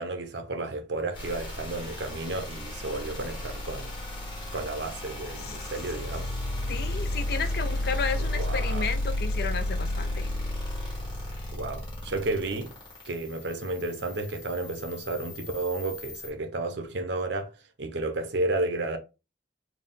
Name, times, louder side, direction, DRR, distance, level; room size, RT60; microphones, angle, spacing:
voice 1, 0.0-4.0 4.5-6.3 8.2-8.9 11.5-12.7 13.1-17.5 17.8-19.0, right 2 dB, 65° right, 0.7 m, -32 dB
sound 1, 1.1-16.3, left 1 dB, 25° left, 1.2 m, -33 dB
voice 2, 6.7-10.3, left 5 dB, 55° left, 0.5 m, -33 dB
4.1 x 2.3 x 3.6 m
head